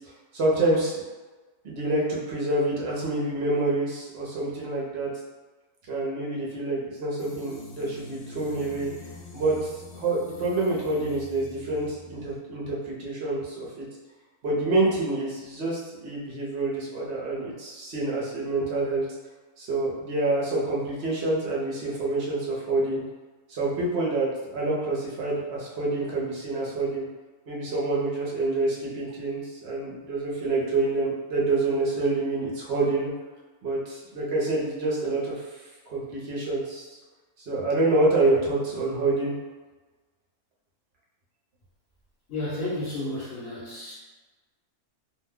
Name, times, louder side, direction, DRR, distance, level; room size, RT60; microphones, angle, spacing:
voice 1, 0.3-1.0 1.6-5.1 5.9-8.9 9.3-13.9 14.4-19.0 19.6-23.0 23.5-27.1 27.5-33.1 33.6-35.4 35.9-36.8 37.5-39.3, right 2 dB, 50° right, -5 dB, 0.9 m, -27 dB
sound 1, 7.2-12.4, left 3 dB, 85° left, 1.1 m, -45 dB
voice 2, 42.3-43.9, left 1 dB, 50° left, -8 dB, 0.9 m, -32 dB
2.7 x 2.2 x 3.6 m, 1.3 s
omnidirectional pair, 1.6 m